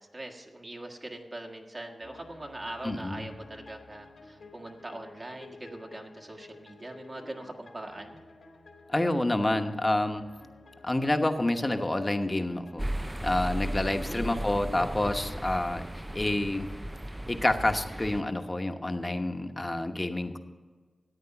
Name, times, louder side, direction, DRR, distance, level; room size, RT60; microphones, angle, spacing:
voice 1, 0.0-8.2 14.0-14.5, right 1 dB, 40° right, 2 dB, 1.8 m, -42 dB
sound 1, 2.0-12.9, left 3 dB, 80° left, 2.0 m, -52 dB
voice 2, 2.8-3.2 8.9-10.2 10.8-12.9 13.2-16.7 17.3-20.4, left 1 dB, 25° left, 6 dB, 1.1 m, -28 dB
sound 2, 12.8-18.2, right 1 dB, 15° right, 0.4 m, -36 dB
14.0 x 8.9 x 5.9 m, 1.4 s
cardioid pair, 50°, 0 cm